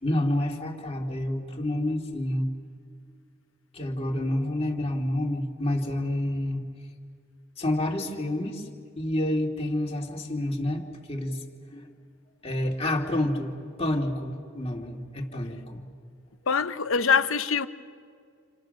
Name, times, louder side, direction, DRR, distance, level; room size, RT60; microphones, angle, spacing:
voice 1, 0.0-2.5 3.7-6.6 7.6-8.7 9.0-11.4 11.7-11.9 12.4-15.8, left 1 dB, 30° left, 2.5 m, -28 dB
voice 2, 16.5-17.7, left 6 dB, 75° left, 0.9 m, -23 dB
28.5 x 28.5 x 6.5 m
head